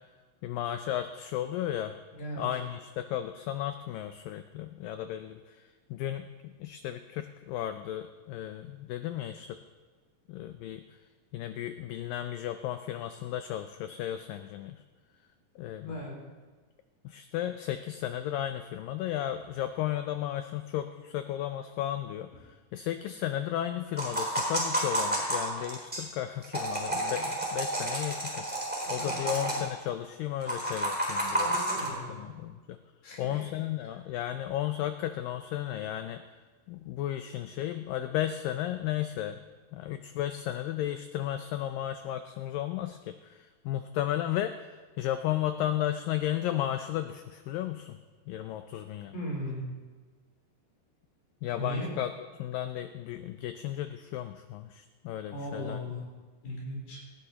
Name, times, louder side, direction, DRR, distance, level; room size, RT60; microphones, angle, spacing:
voice 1, 0.4-2.0 2.4-9.6 10.3-11.0 11.3-14.8 15.6-16.1 17.0-31.7 32.2-32.8 33.2-36.2 36.7-39.4 39.7-48.0 48.3-49.1 51.4-52.1 52.4-55.8, left 12 dB, 90° left, 9 dB, 1.9 m, -34 dB
voice 2, 2.2-2.5 15.9-16.1 29.0-29.5 31.3-32.3 33.0-33.4 49.1-49.7 51.6-51.9 55.3-56.0 56.4-57.0, equal, 65° left, -3 dB, 5.5 m, -37 dB
sound 1, 24.0-26.0 26.4-29.6 30.4-31.9, right 1 dB, 5° right, 2.9 m, -30 dB
18.5 x 15.0 x 2.9 m, 1.4 s
omnidirectional pair, 4.6 m